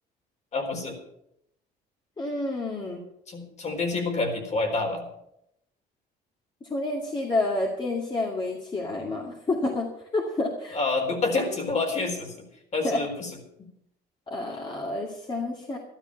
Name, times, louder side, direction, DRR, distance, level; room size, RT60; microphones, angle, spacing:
voice 1, 0.5-1.0 3.3-5.1 10.7-12.5 12.7-13.7, left 3 dB, 45° left, 3 dB, 4.1 m, -28 dB
voice 2, 2.2-3.0 6.6-10.8 12.8-13.0 14.3-15.8, left 2 dB, 30° left, -1 dB, 2.4 m, -29 dB
13.0 x 13.0 x 5.8 m, 0.78 s
cardioid pair, 110°, 17 cm